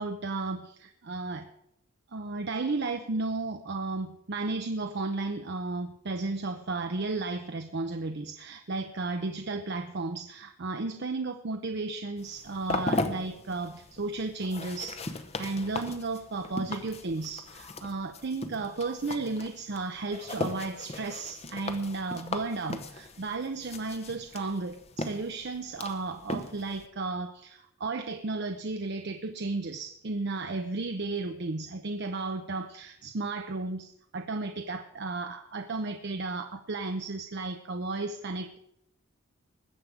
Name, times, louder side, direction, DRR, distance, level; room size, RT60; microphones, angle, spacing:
voice 1, 0.0-1.5 2.1-38.6, right 3 dB, 50° right, 6 dB, 0.6 m, -34 dB
sound 1, 12.2-26.9, left 2 dB, 30° left, 0.8 m, -38 dB
20.5 x 7.6 x 5.0 m, 0.78 s
head